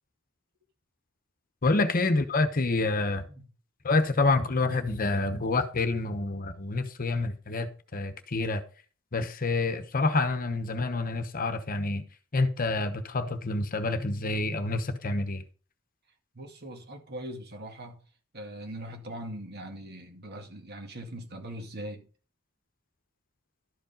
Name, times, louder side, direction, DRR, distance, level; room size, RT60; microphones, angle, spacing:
voice 1, 1.6-3.2 3.8-8.6 9.1-12.0 12.3-15.4, left 3 dB, 45° left, 1.0 m, -27 dB
voice 2, 16.3-18.0 18.3-22.1, right 1 dB, 50° right, 2.2 m, -41 dB
12.5 x 5.2 x 5.2 m
head